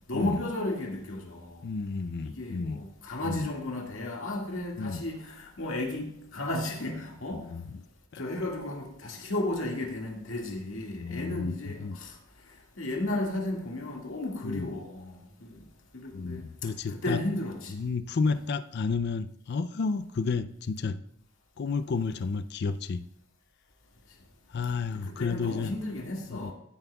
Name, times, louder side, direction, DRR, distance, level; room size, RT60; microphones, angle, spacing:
voice 1, 0.1-1.6 2.2-7.5 8.2-12.1 12.8-15.6 15.9-16.4 16.9-17.7 25.2-26.5, left 1 dB, 70° left, 2.0 m, -34 dB
voice 2, 1.6-2.8 3.2-3.5 4.8-5.0 7.3-7.7 8.1-8.2 11.0-12.0 14.4-14.7 16.1-17.2 17.7-21.0 21.6-23.0 24.5-25.7 26.3-26.5, left 4 dB, 50° left, 0.4 m, -31 dB
15.0 x 9.0 x 2.3 m
head